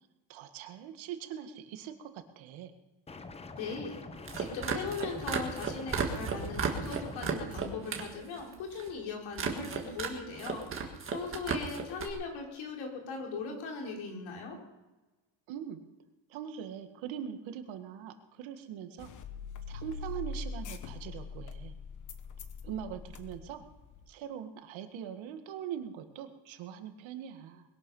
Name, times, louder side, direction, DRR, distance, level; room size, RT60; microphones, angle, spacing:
voice 1, 0.3-2.7 15.5-15.8 16.3-19.1 19.7-21.7 22.6-23.6 24.1-27.6, right 9 dB, 85° right, 7 dB, 1.9 m, -42 dB
sound 1, 3.1-7.5, left 3 dB, 15° left, 0.7 m, -46 dB
voice 2, 3.6-4.0 4.3-10.7 11.1-14.6, left 4 dB, 85° left, 0 dB, 4.5 m, -39 dB
sound 2, 4.1-8.1 8.4-8.9 9.3-10.1 10.4-12.1, right 6 dB, 25° right, 1.9 m, -34 dB
sound 3, 19.0-24.1, left 3 dB, 40° left, 1.2 m, -42 dB
21.0 x 11.5 x 5.5 m, 1.1 s
cardioid pair, 170°, 45 cm